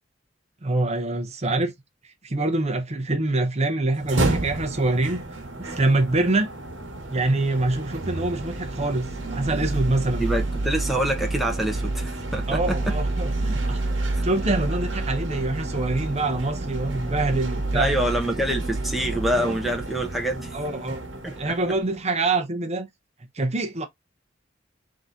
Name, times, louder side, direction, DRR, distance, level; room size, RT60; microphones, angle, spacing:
voice 1, 0.6-1.7 2.2-5.2 5.6-6.5 7.1-10.2 12.5-17.9 20.5-21.0 21.4-22.9 23.3-23.9, right 2 dB, 35° right, 0.8 m, -25 dB
sound 1, 3.9-22.1, right 2 dB, 85° right, 1.2 m, -29 dB
voice 2, 10.2-12.9 14.1-14.2 17.7-20.5 21.2-21.5, right 1 dB, ahead, 0.7 m, -26 dB
3.7 x 2.8 x 3.6 m
head